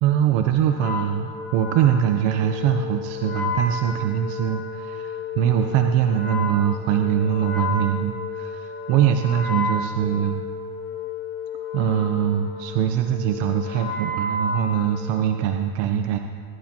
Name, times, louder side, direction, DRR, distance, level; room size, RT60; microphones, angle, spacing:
voice 1, 0.0-10.4 11.7-16.2, right 9 dB, 65° right, 6 dB, 0.9 m, -22 dB
Wind instrument woodwind instrument, 0.7-15.4, left 3 dB, 30° left, 3.0 m, -32 dB
22.0 x 12.0 x 2.9 m, 2.1 s
supercardioid pair, 130°, 49 cm